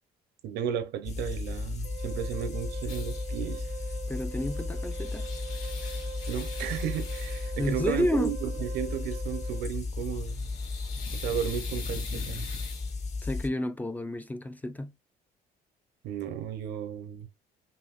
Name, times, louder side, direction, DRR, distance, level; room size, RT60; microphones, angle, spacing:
voice 1, 0.4-3.7 6.3-10.5 11.1-12.5 16.0-17.3, right 9 dB, 85° right, 0.8 m, -34 dB
sound 1, 1.0-13.5, left 3 dB, 40° left, 0.9 m, -35 dB
Wind instrument woodwind instrument, 1.8-9.7, right 7 dB, 60° right, 0.5 m, -43 dB
sound 2, 2.9-3.3 4.5-7.8 10.1-12.9, left 5 dB, 60° left, 3.0 m, -43 dB
voice 2, 4.1-5.3 7.6-8.4 13.2-14.9, left 1 dB, 10° left, 0.4 m, -31 dB
5.7 x 2.6 x 2.5 m
cardioid pair, 110°, 17 cm